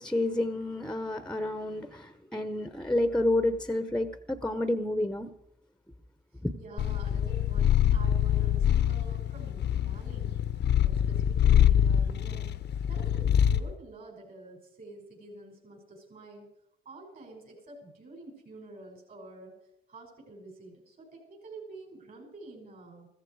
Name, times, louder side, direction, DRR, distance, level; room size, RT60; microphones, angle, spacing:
voice 1, 0.0-5.3 6.4-6.5, left 1 dB, 5° left, 0.9 m, -29 dB
voice 2, 6.5-10.3 10.8-12.6 12.9-16.5 16.8-19.6 19.9-23.1, right 2 dB, 45° right, 6.0 m, -48 dB
Purr, 6.8-13.7, left 10 dB, 60° left, 0.8 m, -25 dB
15.0 x 14.5 x 4.8 m
cardioid pair, 90°, 20 cm